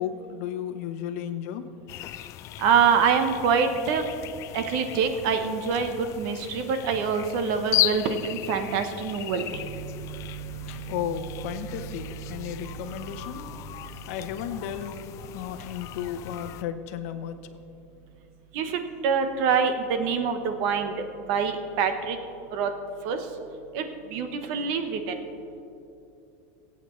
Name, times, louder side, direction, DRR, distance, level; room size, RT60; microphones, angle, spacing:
voice 1, 0.0-1.7 10.7-13.5 14.1-17.4, left 9 dB, 65° left, 9 dB, 0.8 m, -34 dB
sound 1, 1.9-16.6, left 15 dB, 40° left, 0.3 m, -36 dB
voice 2, 2.6-4.1 4.5-11.0 11.6-14.1 18.5-22.2 22.5-22.7 23.0-23.3 23.7-25.2, right 6 dB, 55° right, 7 dB, 1.0 m, -26 dB
22.0 x 8.4 x 3.2 m, 2.8 s
supercardioid pair, 145°, 8 cm